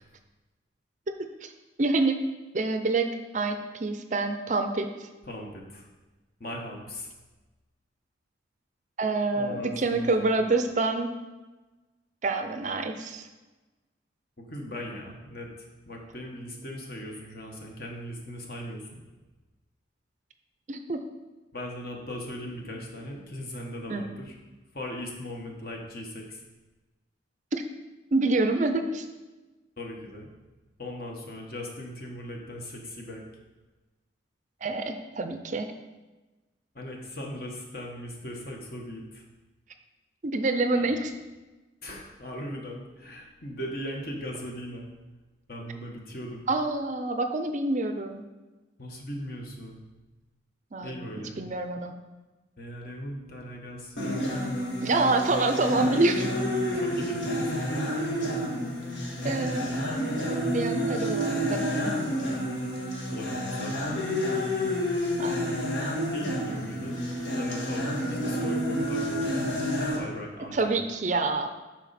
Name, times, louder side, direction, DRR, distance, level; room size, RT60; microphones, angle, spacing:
voice 1, 1.8-2.2 2.5-3.1 3.3-5.1 9.0-11.1 12.2-13.3 20.7-21.0 23.9-24.0 27.5-27.6 28.1-29.1 34.6-35.7 40.2-41.1 46.5-48.2 50.7-51.0 51.4-51.9 54.8-56.3 59.2-59.7 60.5-61.9 65.2-65.4 70.5-71.5, right 3 dB, 40° right, 7 dB, 0.5 m, -27 dB
voice 2, 5.3-5.9 6.4-7.1 9.3-10.4 14.4-19.0 21.5-24.3 24.7-26.4 29.8-30.3 30.8-33.2 36.7-39.2 40.7-40.9 41.8-44.9 45.5-46.5 48.8-49.8 50.8-51.5 52.6-55.1 56.7-57.7 59.2-59.7 63.1-63.8 66.1-67.0 67.3-70.8, equal, 50° left, 0 dB, 1.4 m, -39 dB
sound 1, 54.0-70.0, equal, 75° left, 1.8 m, -29 dB
12.0 x 4.5 x 4.2 m, 1.2 s
head